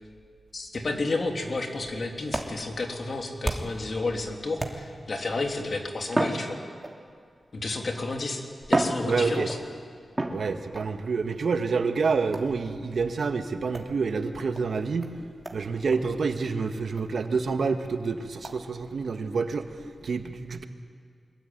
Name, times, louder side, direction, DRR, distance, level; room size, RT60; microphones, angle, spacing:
voice 1, 0.5-6.6 7.5-8.4 8.7-9.6, left 2 dB, 55° left, 3 dB, 3.1 m, -31 dB
sound 1, 1.7-3.9 4.6-5.2 6.1-7.2 8.0-8.1 8.6-9.7 10.2-10.9 12.3-12.6 13.7-13.9 14.5-14.6 15.0-15.1 15.4-15.6 15.9-16.0 16.4-16.5 17.0-17.1 17.5-17.6 18.4-18.6, right 1 dB, 20° right, 2.9 m, -31 dB
voice 2, 9.1-9.5 10.3-15.1 15.5-19.7 20.0-20.6, right 4 dB, 75° right, 6 dB, 1.7 m, -28 dB
24.5 x 21.5 x 9.4 m, 2.2 s
cardioid pair, 70°, 0 cm